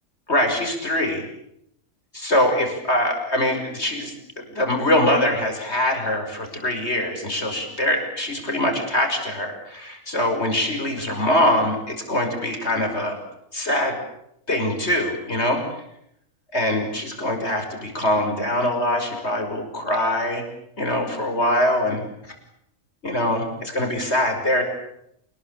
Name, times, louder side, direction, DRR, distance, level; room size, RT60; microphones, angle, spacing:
voice 1, 0.3-1.2 2.1-13.2 13.5-14.0 14.5-15.6 16.5-20.4 20.8-22.3 23.0-24.6, left 1 dB, 50° left, 4 dB, 6.3 m, -23 dB
28.0 x 21.0 x 8.5 m, 0.77 s
omnidirectional pair, 1.4 m